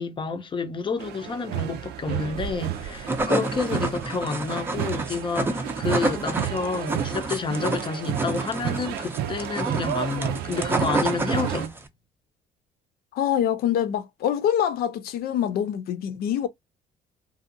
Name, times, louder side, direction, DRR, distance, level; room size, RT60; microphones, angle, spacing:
voice 1, 0.0-11.8, left 4 dB, 30° left, 0.6 m, -29 dB
sound 1, 1.0-11.7, right 11 dB, 80° right, 0.5 m, -32 dB
sound 2, 2.8-11.9, right 2 dB, 15° right, 0.5 m, -29 dB
voice 2, 13.1-16.5, left 10 dB, 65° left, 0.5 m, -25 dB
2.6 x 2.4 x 2.5 m
cardioid pair, 110°, 17 cm